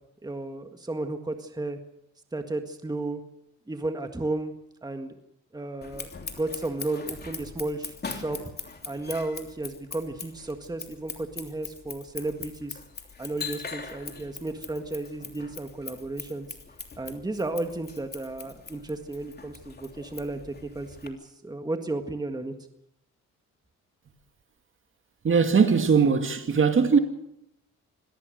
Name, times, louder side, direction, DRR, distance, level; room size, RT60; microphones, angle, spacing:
voice 1, 0.2-1.8 2.3-3.2 3.7-4.5 4.8-5.1 5.5-8.4 8.9-12.8 13.2-16.5 17.0-22.5, right 2 dB, 15° right, 1.8 m, -33 dB
Scissors, 5.8-21.1, left 5 dB, 35° left, 3.1 m, -41 dB
voice 2, 25.2-27.0, right 5 dB, 40° right, 2.2 m, -20 dB
25.5 x 17.0 x 6.6 m
cardioid pair, 90°, 30 cm